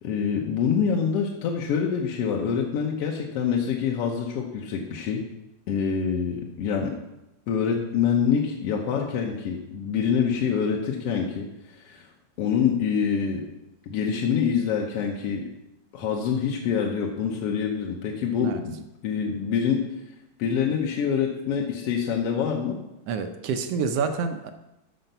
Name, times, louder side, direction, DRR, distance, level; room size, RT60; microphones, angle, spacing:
voice 1, 0.0-5.2 5.7-7.0 7.5-12.1 12.4-13.4 13.9-15.5 15.9-18.7 19.0-19.9 20.4-22.8, left 7 dB, 60° left, -1 dB, 1.8 m, -26 dB
voice 2, 23.1-24.5, right 5 dB, 70° right, 7 dB, 1.6 m, -27 dB
13.5 x 5.1 x 6.8 m, 0.91 s
omnidirectional pair, 3.5 m